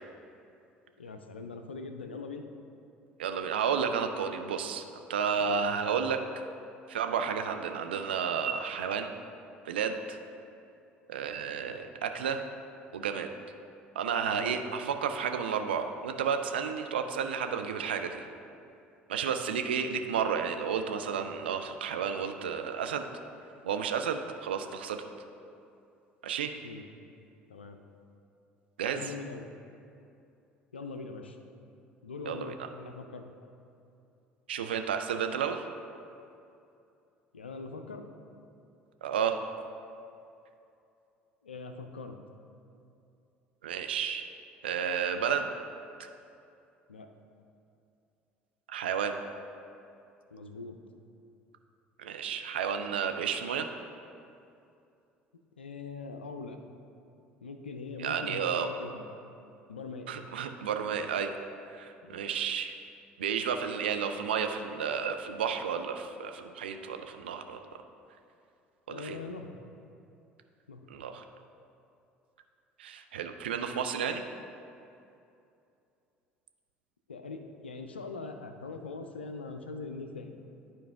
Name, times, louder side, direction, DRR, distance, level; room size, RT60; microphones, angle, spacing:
voice 1, 1.0-2.5 5.4-5.6 14.3-14.6 26.6-26.9 27.5-27.8 28.9-29.5 30.7-31.4 32.0-33.3 37.3-38.1 41.4-42.2 46.9-47.1 50.3-50.8 55.6-56.6 57.4-59.0 59.7-60.2 62.0-62.3 68.9-69.6 70.7-70.9 77.1-80.4, left 4 dB, 80° left, 6 dB, 0.4 m, -42 dB
voice 2, 3.2-6.2 6.9-9.1 9.7-10.2 11.1-12.4 12.9-13.3 14.0-18.3 19.1-23.1 23.6-25.0 26.2-26.5 28.8-29.1 32.3-32.5 34.5-35.6 39.0-39.4 43.6-44.2 44.6-45.5 46.0-46.1 48.7-49.1 52.0-53.7 58.0-58.7 60.1-61.3 61.7-62.8 63.2-67.6 68.9-69.2 70.9-71.2 72.8-74.2, right 7 dB, 75° right, 6 dB, 0.4 m, -32 dB
10.5 x 4.5 x 3.4 m, 2.6 s
figure-of-eight pair, 60°, 6 cm